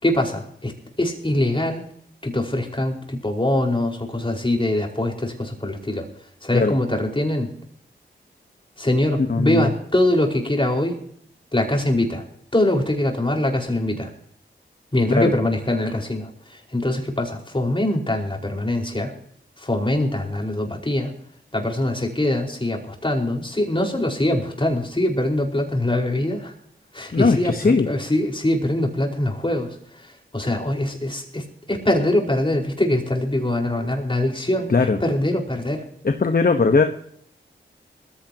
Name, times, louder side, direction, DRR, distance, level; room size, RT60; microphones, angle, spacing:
voice 1, 0.0-1.8 2.2-6.1 6.4-7.5 8.8-11.0 11.5-12.2 12.5-14.1 14.9-19.1 19.6-21.1 21.5-26.5 26.9-35.8, left 1 dB, 25° left, 1 dB, 5.2 m, -23 dB
voice 2, 9.2-9.7 15.2-15.3 27.1-27.9 34.7-35.0 36.0-36.8, left 4 dB, 45° left, 6 dB, 1.3 m, -19 dB
21.0 x 15.5 x 3.0 m, 0.64 s
cardioid pair, 45°, 20 cm